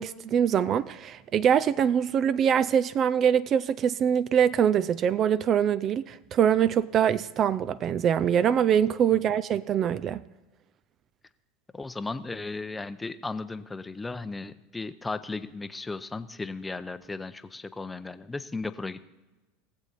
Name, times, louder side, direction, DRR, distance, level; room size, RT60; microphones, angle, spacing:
voice 1, 0.0-10.2, right 8 dB, 40° right, 0.4 m, -24 dB
voice 2, 11.7-19.1, left 3 dB, 15° left, 0.6 m, -36 dB
19.0 x 7.4 x 4.1 m
hypercardioid pair, 85°, 0 cm